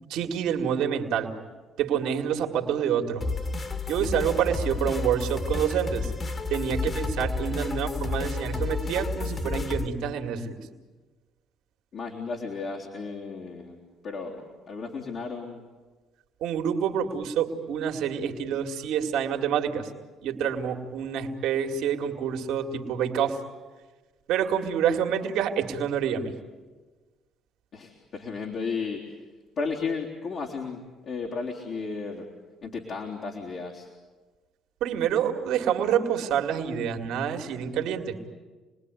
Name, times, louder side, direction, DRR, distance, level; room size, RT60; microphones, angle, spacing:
voice 1, 0.1-1.3 1.8-3.2 3.9-6.1 6.5-10.6 16.4-19.9 20.2-23.4 24.3-26.3 34.8-38.2, right 8 dB, 70° right, 3 dB, 2.4 m, -27 dB
sound 1, 3.2-9.9, left 3 dB, 35° left, 2.5 m, -31 dB
voice 2, 11.9-15.6 27.7-29.2 29.6-32.3 32.6-33.9, left 4 dB, 60° left, -2 dB, 3.6 m, -34 dB
28.0 x 20.0 x 9.7 m, 1.3 s
hypercardioid pair, 60°, 0 cm